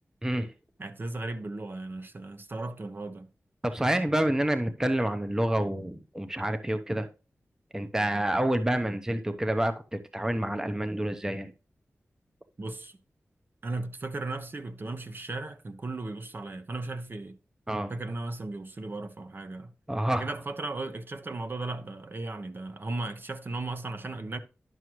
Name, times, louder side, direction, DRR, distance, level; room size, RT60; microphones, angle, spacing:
voice 1, 0.8-3.3 12.6-13.0 13.6-17.4 17.9-19.7 20.2-24.4, right 2 dB, 45° right, 0.9 m, -36 dB
voice 2, 3.6-7.1 7.7-11.5 17.7-17.9 19.9-20.3, right 1 dB, 10° right, 0.7 m, -28 dB
11.0 x 6.2 x 3.1 m
wide cardioid pair, 90°, 5 cm